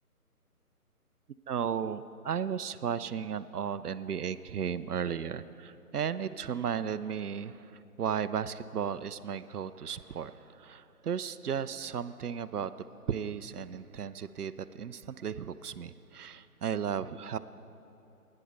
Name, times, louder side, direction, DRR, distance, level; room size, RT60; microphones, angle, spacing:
voice 1, 1.5-12.7 13.1-17.4, right 7 dB, 75° right, 14 dB, 0.6 m, -35 dB
18.5 x 10.0 x 4.1 m, 2.9 s
figure-of-eight pair, 150°, 46 cm